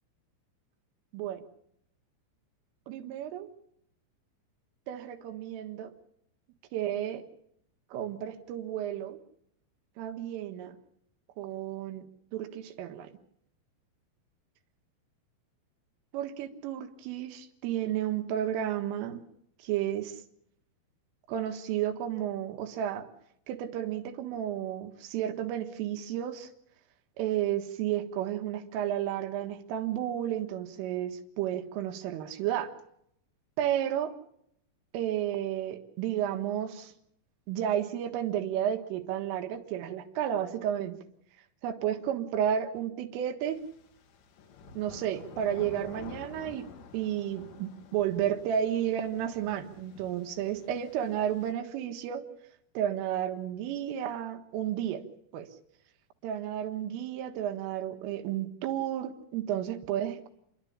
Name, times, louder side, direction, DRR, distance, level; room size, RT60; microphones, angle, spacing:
voice 1, 2.9-3.5 4.9-5.9 6.7-7.2 7.9-9.2 10.0-10.8 11.4-12.1 12.3-13.1 16.1-19.2 19.6-20.2 21.3-23.1 23.5-26.5 27.2-32.7 33.6-34.1 34.9-36.9 37.5-41.0 41.6-43.6 44.8-46.7 46.9-52.3 52.8-55.0 55.3-55.5 56.2-60.3, right 10 dB, 85° right, 6 dB, 4.0 m, -32 dB
sound 1, 43.5-51.5, left 6 dB, 85° left, 4.6 m, -50 dB
29.5 x 11.5 x 8.6 m, 0.73 s
omnidirectional pair, 5.6 m